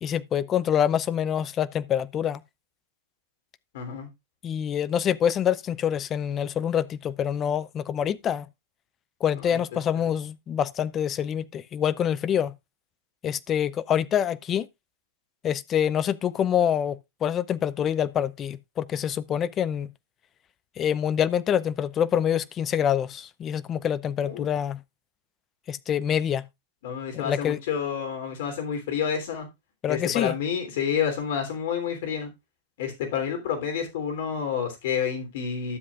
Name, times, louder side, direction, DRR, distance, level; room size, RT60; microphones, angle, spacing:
voice 1, 0.0-2.4 4.4-8.5 9.2-12.5 13.2-14.7 15.4-19.9 20.8-24.8 25.7-26.4 27.1-27.6 29.8-30.3, left 9 dB, 25° left, 0.5 m, -26 dB
voice 2, 3.7-4.1 9.4-9.6 24.2-24.5 26.8-29.5 29.9-32.3 32.8-35.8, left 7 dB, 70° left, 3.2 m, -29 dB
12.5 x 7.5 x 2.4 m
supercardioid pair, 140°, 0 cm